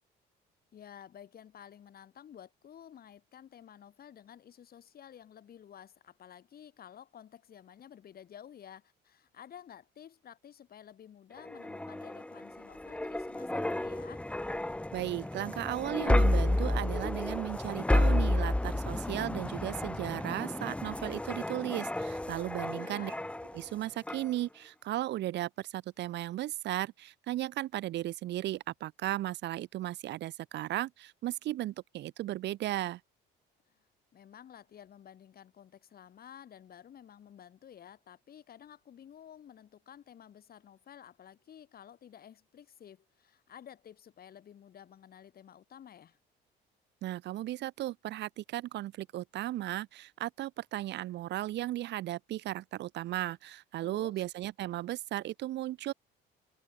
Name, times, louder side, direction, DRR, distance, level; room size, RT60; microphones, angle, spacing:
voice 1, 0.7-14.2 22.5-23.2 33.7-33.8 34.1-46.2 53.8-54.2, left 9 dB, 50° left, 4.0 m, -53 dB
sound 1, 11.4-23.7 24.1-24.3, left 1 dB, 5° left, 0.9 m, -31 dB
voice 2, 14.9-23.1 23.5-33.0 47.0-55.9, right 14 dB, 60° right, 0.7 m, -36 dB
cardioid pair, 100°, 20 cm